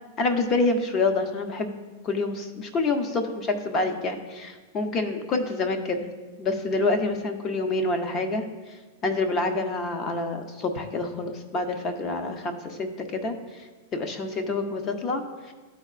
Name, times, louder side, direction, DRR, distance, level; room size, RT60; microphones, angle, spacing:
voice 1, 0.2-1.8 2.0-6.1 6.4-8.4 9.0-13.4 13.9-15.5, left 3 dB, 25° left, 6 dB, 0.7 m, -27 dB
13.5 x 4.5 x 2.4 m, 1.3 s
supercardioid pair, 165°, 0 cm